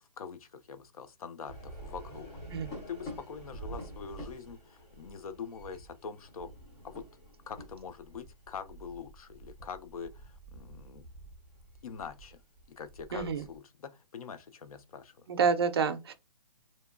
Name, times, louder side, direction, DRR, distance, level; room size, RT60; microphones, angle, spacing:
voice 1, 0.0-2.3 2.9-6.5 6.8-7.0 7.5-11.1 11.8-12.4 12.7-15.3, left 6 dB, 60° left, 0.5 m, -44 dB
sound 1, 1.5-13.6, right 1 dB, 15° left, 0.5 m, -48 dB
voice 2, 13.1-13.4 15.3-16.1, right 6 dB, 40° right, 0.4 m, -28 dB
2.8 x 2.1 x 2.4 m
hypercardioid pair, 165°, 20 cm